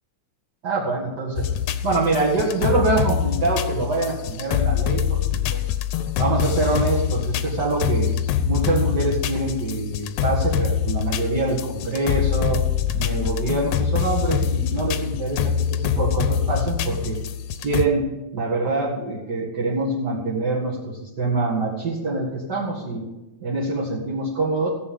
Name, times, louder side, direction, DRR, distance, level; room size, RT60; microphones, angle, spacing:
voice 1, 0.6-1.5 1.8-5.6 6.2-8.1 8.4-12.6 12.9-17.2 17.6-18.0 18.3-23.0 23.4-24.7, right 3 dB, 40° right, -6 dB, 2.1 m, -25 dB
sound 1, 1.4-17.9, left 8 dB, 75° left, 2.0 m, -24 dB
15.5 x 8.3 x 5.2 m, 1.0 s
omnidirectional pair, 3.5 m